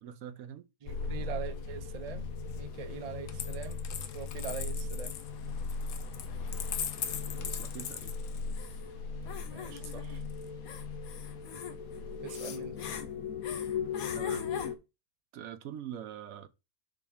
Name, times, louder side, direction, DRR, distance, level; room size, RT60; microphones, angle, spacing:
voice 1, 0.0-0.7 7.3-8.2 14.1-14.5 15.3-16.5, right 10 dB, 75° right, 1.1 m, -44 dB
voice 2, 0.8-2.3 2.5-5.1 9.5-10.2 12.2-12.8, right 8 dB, 40° right, 0.5 m, -43 dB
sound 1, 0.9-14.8, left 5 dB, 90° left, 1.3 m, -37 dB
Coin (dropping), 3.3-8.7 9.8-10.5, left 8 dB, 65° left, 1.0 m, -40 dB
sound 2, 5.8-11.6, left 1 dB, 40° left, 1.1 m, -57 dB
6.2 x 3.7 x 4.9 m
omnidirectional pair, 1.5 m